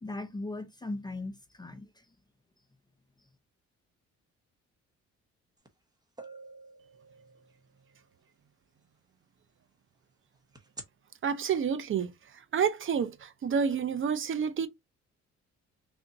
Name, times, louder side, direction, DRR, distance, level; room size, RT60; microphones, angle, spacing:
voice 1, 0.0-2.1, left 2 dB, 15° left, 0.6 m, -38 dB
sound 1, 5.7-5.8 6.2-7.9 10.6-10.8, right 2 dB, 15° right, 0.9 m, -47 dB
voice 2, 11.2-12.1 12.5-14.7, right 7 dB, 40° right, 0.6 m, -29 dB
3.4 x 2.6 x 4.0 m
cardioid pair, 90°, 30 cm